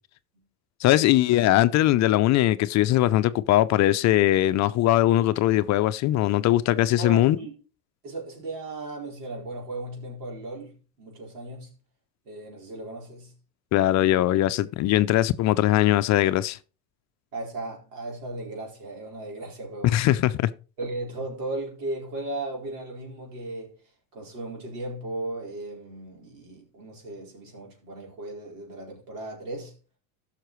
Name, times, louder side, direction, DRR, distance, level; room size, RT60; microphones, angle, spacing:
voice 1, 0.8-7.4 13.7-16.6 19.8-20.5, left 14 dB, 40° left, 0.5 m, -21 dB
voice 2, 7.0-7.5 8.0-11.7 12.2-13.3 17.3-19.9 20.8-23.7 24.1-29.7, right 2 dB, 90° right, 4.4 m, -36 dB
15.0 x 5.9 x 3.1 m
supercardioid pair, 100°, 46 cm